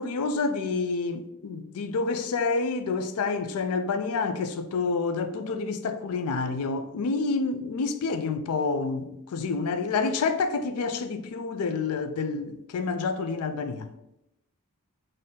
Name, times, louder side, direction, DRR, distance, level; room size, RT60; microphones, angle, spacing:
voice 1, 0.0-13.9, left 4 dB, 85° left, 0.4 m, -28 dB
4.1 x 2.6 x 3.7 m
head